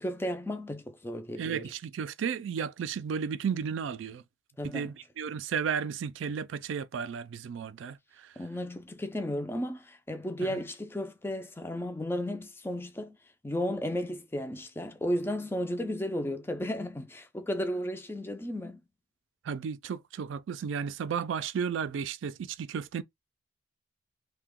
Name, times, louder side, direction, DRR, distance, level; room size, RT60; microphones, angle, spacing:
voice 1, 0.0-1.7 4.6-4.9 8.4-13.2 13.4-18.8, equal, 10° left, 0.3 m, -34 dB
voice 2, 1.4-4.2 4.6-8.3 10.4-10.6 19.4-23.0, right 7 dB, 75° right, 0.3 m, -34 dB
2.8 x 2.2 x 3.5 m
head